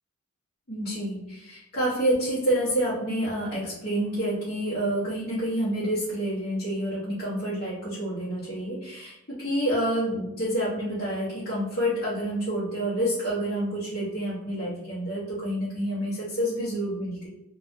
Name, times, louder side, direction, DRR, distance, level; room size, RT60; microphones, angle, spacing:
voice 1, 0.7-17.3, right 1 dB, 45° left, -9 dB, 0.9 m, -28 dB
2.7 x 2.3 x 2.6 m, 0.86 s
head